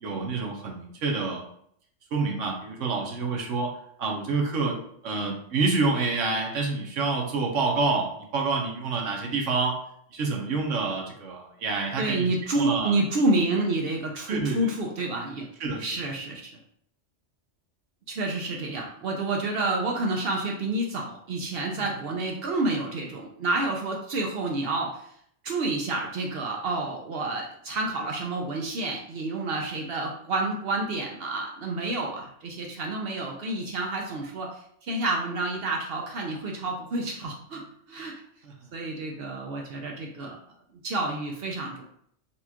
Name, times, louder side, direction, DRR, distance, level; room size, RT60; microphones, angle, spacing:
voice 1, 0.0-1.4 2.1-3.7 4.0-9.8 10.1-13.0 14.3-14.6 15.6-15.9, right 4 dB, 85° right, 1 dB, 1.1 m, -28 dB
voice 2, 12.0-15.5 15.8-16.5 18.1-25.1 25.4-38.1 38.7-40.4 40.8-41.8, right 2 dB, 60° right, 0 dB, 0.7 m, -29 dB
4.1 x 2.3 x 2.8 m, 0.66 s
omnidirectional pair, 1.2 m